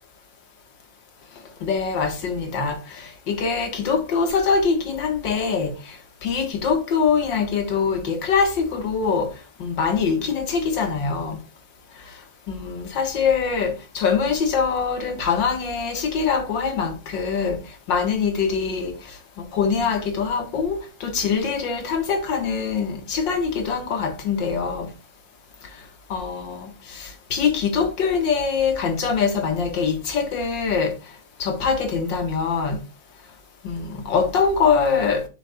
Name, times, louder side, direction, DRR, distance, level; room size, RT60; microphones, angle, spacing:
voice 1, 1.6-9.3 9.6-11.4 12.5-17.6 17.9-24.9 26.1-31.0 31.4-32.8 33.6-35.3, left 5 dB, 75° left, 2.3 m, -23 dB
8.6 x 6.7 x 2.4 m
omnidirectional pair, 2.1 m